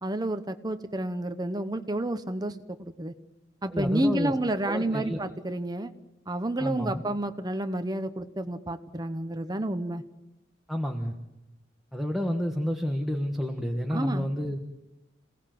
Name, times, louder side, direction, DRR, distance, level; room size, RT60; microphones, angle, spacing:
voice 1, 0.0-3.1 3.6-5.9 6.3-10.0 13.9-14.3, right 1 dB, 20° right, 10 dB, 1.0 m, -30 dB
voice 2, 3.7-4.3 4.7-5.2 6.6-7.0 10.7-11.2 11.9-14.6, equal, ahead, 2 dB, 1.4 m, -30 dB
27.5 x 18.0 x 7.7 m, 0.99 s
head